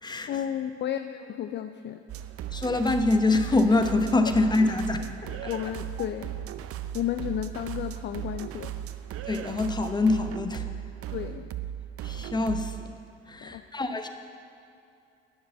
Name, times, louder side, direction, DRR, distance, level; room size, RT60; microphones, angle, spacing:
voice 1, 0.2-2.0 5.2-6.3 6.9-8.7 11.1-11.5 13.4-13.6 13.9-14.0, left 10 dB, 35° left, 9 dB, 0.5 m, -33 dB
sound 1, 2.1-12.9, right 11 dB, 45° right, 0.6 m, -37 dB
voice 2, 2.5-5.0 9.3-10.7 12.0-12.9 13.3-14.1, left 2 dB, 15° left, 7 dB, 0.9 m, -25 dB
9.5 x 6.8 x 8.2 m, 2.6 s
hypercardioid pair, 60°, 32 cm